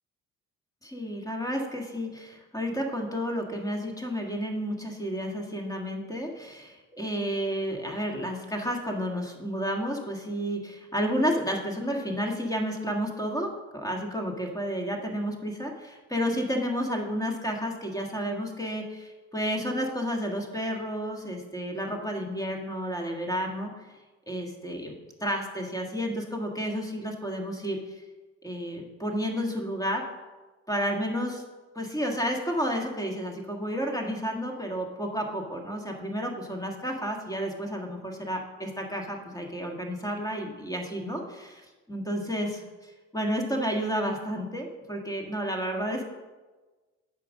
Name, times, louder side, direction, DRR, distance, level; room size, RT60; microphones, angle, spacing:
voice 1, 0.8-23.7 24.3-28.0 28.4-30.0 30.7-31.4 31.7-46.1, equal, 10° left, 2 dB, 1.7 m, -31 dB
8.2 x 5.1 x 6.4 m, 1.2 s
cardioid pair, 85°, 30 cm